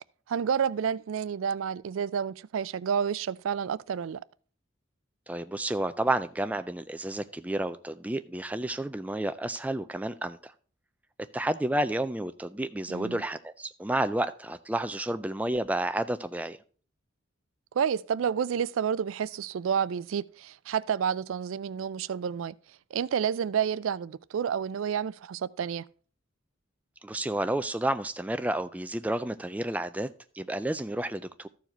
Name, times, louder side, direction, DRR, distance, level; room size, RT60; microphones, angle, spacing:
voice 1, 0.3-4.2 12.9-13.2 17.7-22.5 22.9-25.8, right 7 dB, 85° right, 0.4 m, -30 dB
voice 2, 5.3-10.5 11.3-16.6 27.0-30.1 30.3-31.5, right 1 dB, 5° right, 0.3 m, -31 dB
13.5 x 4.7 x 4.4 m
head